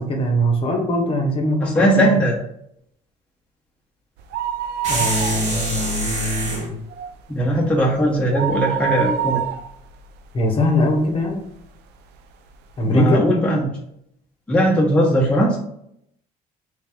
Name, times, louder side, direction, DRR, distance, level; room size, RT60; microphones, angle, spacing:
voice 1, 0.0-2.1 4.9-6.7 10.3-11.4 12.8-13.3, left 1 dB, 35° left, 2 dB, 0.9 m, -21 dB
voice 2, 1.6-2.4 7.3-9.4 12.8-13.7 14.5-15.6, equal, 5° left, -3 dB, 0.7 m, -18 dB
sound 1, 4.2-5.8 6.2-6.3 6.7-11.1 11.6-11.7 12.5-12.6 12.8-12.9, right 10 dB, 75° right, 0.4 m, -27 dB
sound 2, 4.8-6.7, right 1 dB, 40° right, 1.5 m, -25 dB
3.3 x 2.7 x 3.5 m, 0.74 s
cardioid pair, 110°, 17 cm